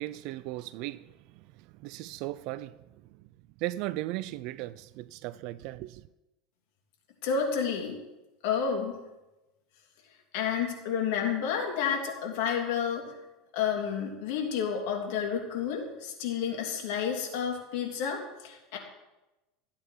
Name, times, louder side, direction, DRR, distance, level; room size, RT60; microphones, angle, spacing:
voice 1, 0.0-1.4 1.8-2.7 3.6-6.0, right 16 dB, 60° right, 0.4 m, -37 dB
voice 2, 7.2-8.0 8.4-9.0 10.3-13.0 13.5-18.8, left 7 dB, 65° left, 3.0 m, -30 dB
14.0 x 8.7 x 4.6 m
supercardioid pair, 130°, 0 cm